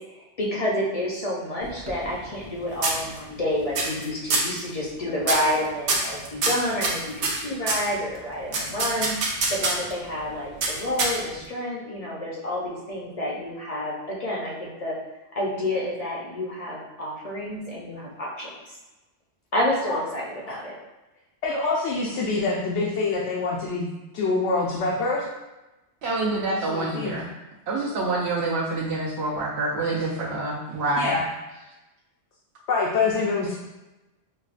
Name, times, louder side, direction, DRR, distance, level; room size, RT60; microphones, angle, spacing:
voice 1, 0.2-14.9 15.3-18.8 19.5-20.7, left 1 dB, 40° left, -4 dB, 0.5 m, -29 dB
sound 1, 1.6-2.5 2.8-3.4 3.7-4.0 4.3-4.6 5.2-5.5 5.9-7.9 8.5-9.9 10.6-11.4, right 3 dB, 90° right, 1.0 m, -25 dB
voice 2, 21.4-23.9 24.1-25.2 26.7-27.1 31.0-31.2 32.7-33.5, left 3 dB, 75° left, -4 dB, 0.9 m, -25 dB
voice 3, 26.0-27.3 27.7-31.2, right 2 dB, 65° right, -6 dB, 0.9 m, -27 dB
5.4 x 2.1 x 2.4 m, 1.1 s
omnidirectional pair, 1.2 m